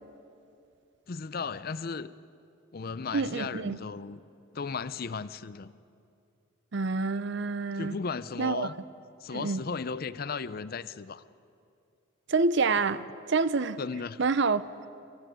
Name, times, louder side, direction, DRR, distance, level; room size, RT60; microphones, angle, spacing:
voice 1, 1.1-2.1 2.7-4.2 4.5-5.7 7.7-8.7 9.2-11.2 13.8-14.2, left 5 dB, 45° left, 0.5 m, -35 dB
voice 2, 3.1-3.8 6.7-8.0 8.4-8.7 9.3-9.6 12.3-13.8 14.2-14.9, right 4 dB, 55° right, 0.6 m, -27 dB
21.5 x 15.0 x 9.2 m
head